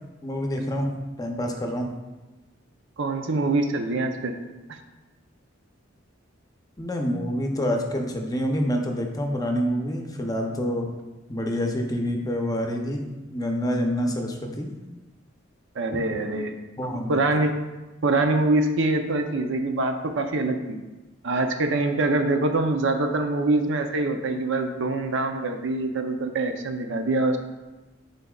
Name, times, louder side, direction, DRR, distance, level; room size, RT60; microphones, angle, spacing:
voice 1, 0.2-0.9 1.2-1.9 6.8-10.9 11.3-14.7 16.8-17.4, equal, 20° left, 2 dB, 0.7 m, -27 dB
voice 2, 3.0-4.3 15.8-16.5 16.8-17.6 18.0-20.8 21.2-27.4, right 2 dB, 70° right, 5 dB, 0.6 m, -24 dB
9.9 x 4.1 x 2.4 m, 1.1 s
head